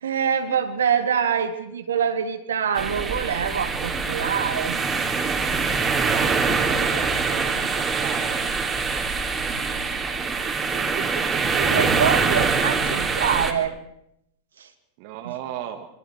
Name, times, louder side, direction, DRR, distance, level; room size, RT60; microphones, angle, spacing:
voice 1, 0.0-4.8 11.5-13.7 14.6-14.7 15.2-15.3, right 7 dB, 65° right, 7 dB, 2.2 m, -25 dB
sound 1, 2.8-13.5, right 4 dB, 20° right, 3.4 m, -24 dB
voice 2, 5.7-8.4 10.7-11.1 11.3-11.4 12.7-12.8 15.0-15.9, right 11 dB, 45° right, 7 dB, 1.8 m, -35 dB
26.5 x 25.0 x 4.7 m, 0.77 s
figure-of-eight pair, 90°, 0 cm